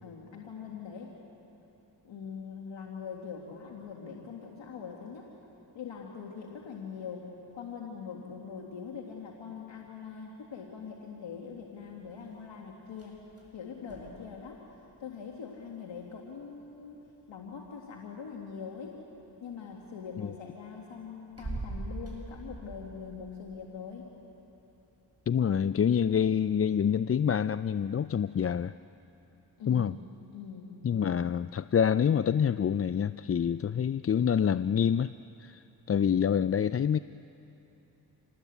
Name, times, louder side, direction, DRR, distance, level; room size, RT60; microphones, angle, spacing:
voice 1, 0.0-1.1 2.0-5.3 5.7-13.2 13.5-14.7 15.0-17.0 17.3-19.0 19.4-24.1 29.6-30.1 30.3-30.8, left 6 dB, 85° left, 0 dB, 2.0 m, -42 dB
sound 1, 11.5-28.2, right 2 dB, 35° right, 8.0 m, -48 dB
voice 2, 25.3-28.7 29.7-29.9 30.8-35.1 35.4-37.0, left 8 dB, 35° left, 15 dB, 0.4 m, -27 dB
27.5 x 19.5 x 8.2 m, 2.9 s
cardioid pair, 40°, 44 cm